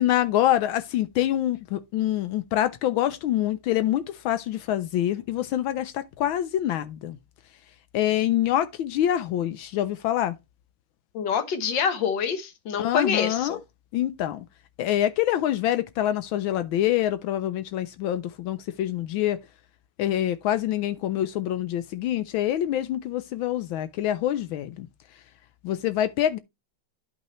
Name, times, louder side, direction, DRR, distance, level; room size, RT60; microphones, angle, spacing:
voice 1, 0.0-7.2 7.9-10.3 12.8-13.6 13.9-14.4 14.8-19.4 20.0-24.9 25.6-26.4, left 12 dB, 75° left, 1.3 m, -25 dB
voice 2, 11.1-13.6, left 6 dB, 60° left, 1.8 m, -26 dB
10.5 x 5.5 x 3.0 m
omnidirectional pair, 2.3 m